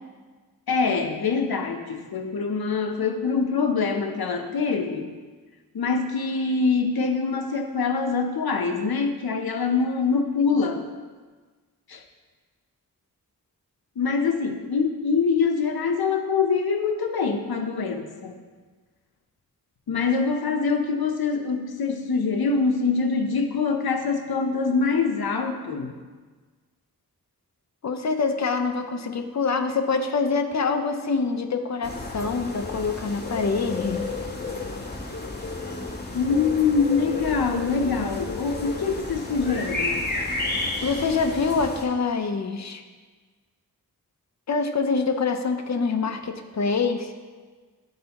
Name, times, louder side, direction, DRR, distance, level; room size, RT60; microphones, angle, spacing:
voice 1, 0.7-5.1 5.7-10.8 11.9-12.0 14.0-18.4 19.9-25.9 36.1-40.0, left 5 dB, 90° left, 5 dB, 0.7 m, -24 dB
voice 2, 27.8-34.1 40.8-42.8 44.5-47.1, left 4 dB, 50° left, 6 dB, 0.6 m, -25 dB
sound 1, 31.8-41.8, left 2 dB, 30° left, 1.3 m, -32 dB
12.0 x 4.0 x 2.9 m, 1.4 s
wide cardioid pair, 70°, 36 cm